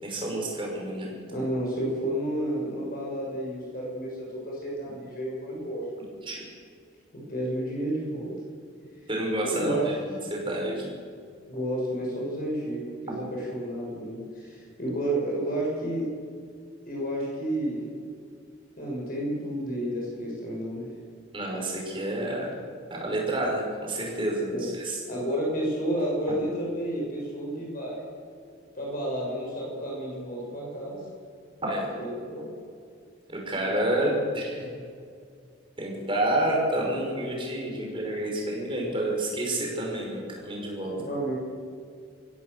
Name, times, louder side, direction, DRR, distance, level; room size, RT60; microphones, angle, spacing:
voice 1, 0.0-1.4 6.2-6.4 9.1-9.9 10.3-10.8 21.3-22.5 22.9-25.0 31.6-31.9 33.3-34.6 35.8-40.9, right 1 dB, 25° right, -1 dB, 5.7 m, -29 dB
voice 2, 1.3-5.9 7.1-8.3 9.4-9.9 11.5-16.1 16.9-17.8 18.8-20.9 24.4-24.7 25.1-28.0 28.8-31.0 31.9-32.5 33.5-33.6 40.9-41.4, right 1 dB, 45° left, -3 dB, 6.8 m, -31 dB
23.5 x 16.0 x 6.9 m, 2.2 s
head